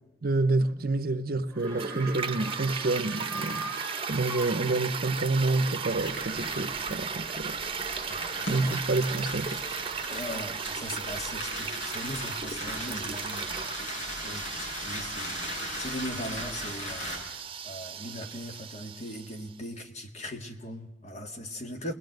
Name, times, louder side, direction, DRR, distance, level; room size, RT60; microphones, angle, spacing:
voice 1, 0.2-3.7 4.1-7.6 8.5-9.6, right 2 dB, 55° right, 0.8 m, -28 dB
sound 1, 1.5-5.2, right 3 dB, 10° left, 3.9 m, -40 dB
Toilet flush, 1.6-19.5, right 6 dB, 30° right, 1.0 m, -36 dB
sound 2, 5.9-17.2, equal, 85° left, 6.7 m, -38 dB
voice 2, 8.1-8.7 10.1-15.5 15.7-17.2 17.6-21.9, equal, 40° left, 2.0 m, -39 dB
27.5 x 20.5 x 7.9 m
head